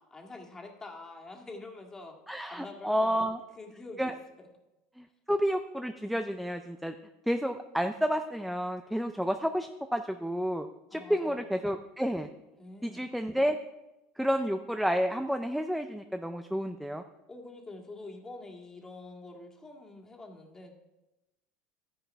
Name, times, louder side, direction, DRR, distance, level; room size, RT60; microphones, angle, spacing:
voice 1, 0.1-2.2 2.5-4.5 10.9-11.6 12.6-13.1 17.3-20.7, left 2 dB, 15° left, 2 dB, 1.9 m, -46 dB
voice 2, 2.3-3.4 4.0-4.1 5.0-6.9 7.3-10.7 10.9-12.3 12.8-13.6 14.2-17.0, equal, ahead, 7 dB, 0.5 m, -30 dB
12.0 x 10.5 x 3.4 m, 0.99 s
supercardioid pair, 125°, 3 cm